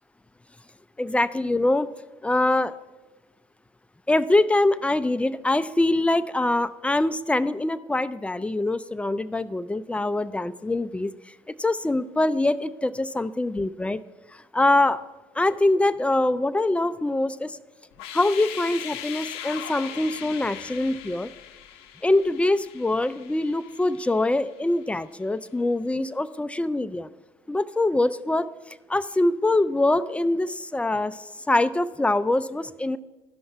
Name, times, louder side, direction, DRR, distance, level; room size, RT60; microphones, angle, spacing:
voice 1, 1.0-1.9 2.2-2.7 4.1-11.1 11.6-14.0 14.5-15.0 15.4-17.5 18.1-21.3 22.0-27.1 27.5-28.5 28.9-31.2 31.5-33.0, left 2 dB, 10° left, 14 dB, 0.4 m, -24 dB
sound 1, 17.9-24.8, left 10 dB, 80° left, 0.6 m, -40 dB
13.0 x 5.4 x 4.6 m, 1.2 s
hypercardioid pair, 55°, 14 cm